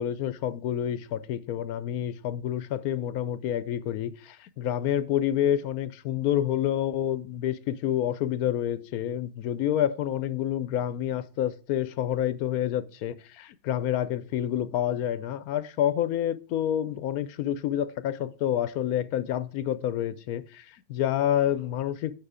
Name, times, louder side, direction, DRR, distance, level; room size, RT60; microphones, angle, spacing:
voice 1, 0.0-22.2, left 11 dB, 85° left, 1.1 m, -28 dB
8.9 x 6.1 x 4.9 m
omnidirectional pair, 1.5 m